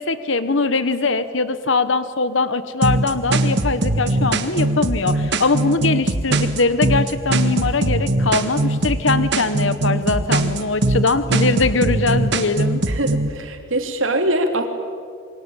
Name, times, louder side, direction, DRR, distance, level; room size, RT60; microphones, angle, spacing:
voice 1, 0.0-12.8, left 3 dB, 65° left, 12 dB, 1.2 m, -21 dB
sound 1, 2.8-13.3, right 2 dB, 60° right, 1.8 m, -20 dB
voice 2, 12.9-14.7, right 1 dB, 75° right, 4 dB, 3.3 m, -22 dB
27.0 x 23.0 x 8.9 m, 2.1 s
head